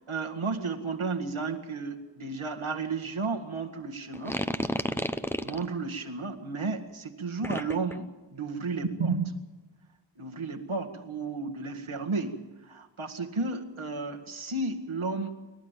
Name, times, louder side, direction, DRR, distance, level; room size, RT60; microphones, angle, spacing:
voice 1, 0.0-4.4 5.4-9.3 10.2-15.3, right 4 dB, 75° right, 3 dB, 2.0 m, -33 dB
sound 1, 4.1-5.7 7.4-7.9, left 1 dB, 5° left, 0.9 m, -31 dB
28.0 x 12.0 x 9.1 m, 1.2 s
wide cardioid pair, 45°, 48 cm